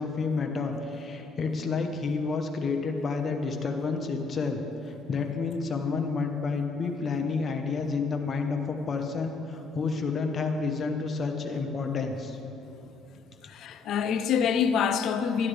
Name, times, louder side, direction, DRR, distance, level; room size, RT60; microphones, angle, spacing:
voice 1, 0.0-4.6 4.9-12.4 13.8-13.9, left 4 dB, 35° left, 1.0 m, -30 dB
voice 2, 13.5-15.5, left 7 dB, 60° left, 0.5 m, -26 dB
12.0 x 9.7 x 3.4 m
cardioid pair, 100°, 0 cm